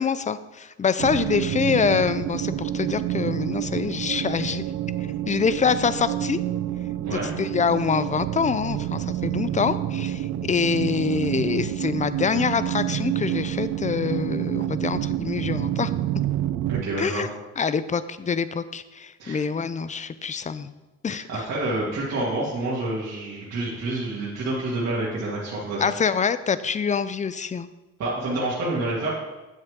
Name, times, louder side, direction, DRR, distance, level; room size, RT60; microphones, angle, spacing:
voice 1, 0.0-4.6 5.3-6.4 7.1-15.9 17.0-17.3 17.6-20.7 21.0-21.4 25.8-27.7, left 6 dB, 25° left, 14 dB, 0.5 m, -25 dB
sound 1, 1.0-16.8, right 12 dB, 85° right, 0.6 m, -28 dB
voice 2, 16.7-17.3 19.2-19.4 21.1-25.9 28.0-29.1, right 2 dB, 60° right, -8 dB, 2.4 m, -28 dB
9.4 x 7.7 x 3.7 m, 1.1 s
cardioid pair, 90°, 30 cm